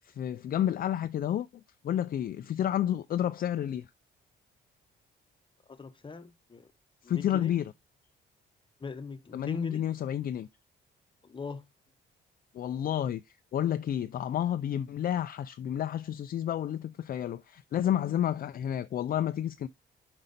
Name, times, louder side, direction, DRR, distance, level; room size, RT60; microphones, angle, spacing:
voice 1, 0.0-1.5 1.8-3.9 7.0-7.7 9.3-10.5 12.5-19.7, left 10 dB, 50° left, 0.4 m, -30 dB
voice 2, 5.7-6.7 7.0-7.5 8.8-9.8 11.2-11.6, left 4 dB, 25° left, 0.9 m, -40 dB
5.4 x 5.1 x 4.1 m
cardioid pair, 90°, 20 cm